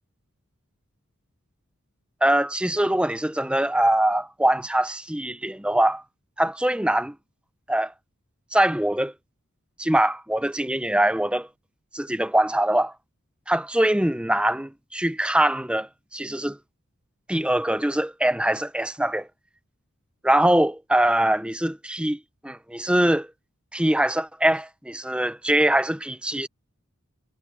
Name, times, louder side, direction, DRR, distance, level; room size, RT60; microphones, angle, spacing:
voice 1, 2.2-6.0 6.4-7.2 7.7-7.9 8.5-9.1 9.8-11.5 11.9-12.9 13.5-16.6 17.3-19.3 20.2-23.3 23.7-26.5, right 1 dB, 5° right, 0.8 m, -23 dB
head